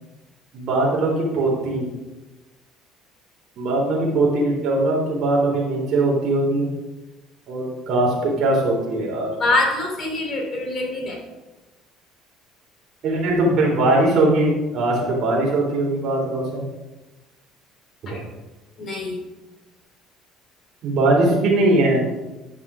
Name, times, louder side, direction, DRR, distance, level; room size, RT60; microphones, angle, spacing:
voice 1, 0.5-1.9 3.6-6.7 7.5-9.3 13.0-16.6 18.0-18.2 20.8-22.0, right 2 dB, 55° right, -2 dB, 3.8 m, -20 dB
voice 2, 9.4-11.2 18.1-18.2 18.8-19.2, left 2 dB, 35° left, -1 dB, 3.4 m, -24 dB
11.5 x 5.6 x 5.0 m, 1.1 s
cardioid pair, 110°, 0 cm